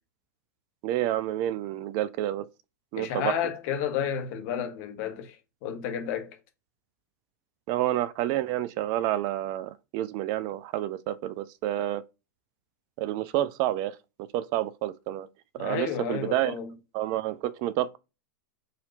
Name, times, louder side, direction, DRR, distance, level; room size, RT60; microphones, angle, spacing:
voice 1, 0.8-2.5 2.9-3.4 7.7-12.0 13.0-14.0 14.3-15.3 15.5-16.5 16.9-18.0, right 13 dB, 45° right, 0.4 m, -29 dB
voice 2, 3.0-5.4 5.6-6.4 15.6-16.7, left 8 dB, 50° left, 1.1 m, -31 dB
4.0 x 2.8 x 2.8 m
hypercardioid pair, 100°, 10 cm